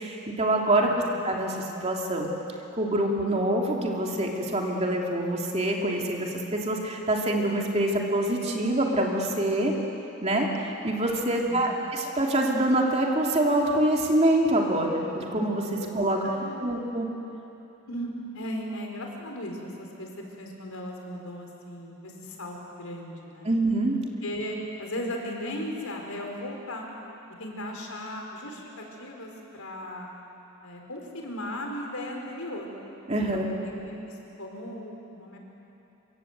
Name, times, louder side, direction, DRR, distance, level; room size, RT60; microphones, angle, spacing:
voice 1, 0.0-0.9 1.2-2.3 2.8-9.7 10.2-15.6 15.9-16.2 16.6-17.1 23.4-24.0 33.1-33.5, right 1 dB, 30° right, 0 dB, 2.8 m, -25 dB
voice 2, 0.8-1.2 11.2-11.8 15.8-15.9 16.2-16.7 17.9-20.1 20.4-23.5 24.2-26.9 27.4-30.1 30.6-32.7 33.3-35.4, equal, 75° left, 1 dB, 4.6 m, -37 dB
26.5 x 24.0 x 8.2 m, 2.9 s
head